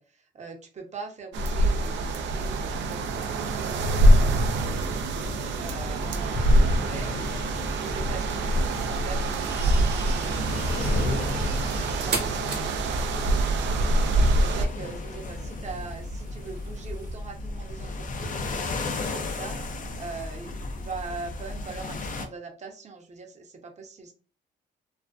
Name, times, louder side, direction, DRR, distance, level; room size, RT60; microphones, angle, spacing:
voice 1, 0.0-5.0 5.6-7.3 7.8-11.4 11.7-12.7 13.3-18.6 19.1-19.6 20.0-24.1, right 4 dB, 40° right, 3 dB, 0.7 m, -42 dB
sound 1, 1.3-14.7, right 1 dB, 75° right, 0.4 m, -24 dB
sound 2, 3.8-22.3, left 2 dB, 45° left, 0.5 m, -35 dB
sound 3, 9.4-17.1, right 4 dB, 60° right, 1.0 m, -39 dB
2.4 x 2.1 x 2.3 m, 0.35 s
supercardioid pair, 65°, 19 cm